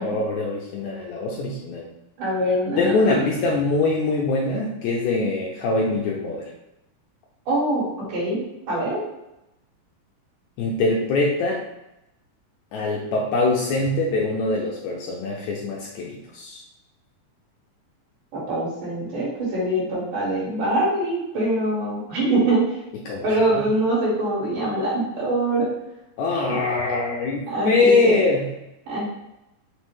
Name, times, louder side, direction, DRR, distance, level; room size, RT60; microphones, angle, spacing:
voice 1, 0.0-1.9 2.8-6.5 10.6-11.6 12.7-16.6 23.1-23.3 23.5-23.7 26.2-28.5, left 3 dB, 80° left, -2 dB, 1.7 m, -23 dB
voice 2, 2.2-3.2 7.5-8.4 8.7-9.0 18.3-22.6 23.2-25.7 26.5-26.6 27.5-28.2 28.9-29.1, right 1 dB, 80° right, -7 dB, 3.2 m, -23 dB
5.9 x 2.1 x 3.1 m, 0.90 s
omnidirectional pair, 3.8 m